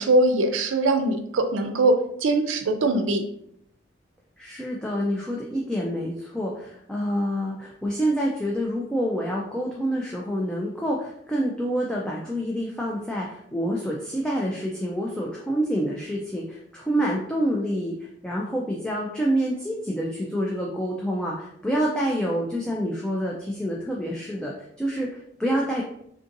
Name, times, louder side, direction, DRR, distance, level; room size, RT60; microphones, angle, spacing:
voice 1, 0.0-3.2, right 2 dB, 90° right, 7 dB, 0.4 m, -22 dB
voice 2, 4.4-17.9 18.2-25.8, equal, 5° left, -3 dB, 0.3 m, -27 dB
3.5 x 2.6 x 2.5 m, 0.71 s
head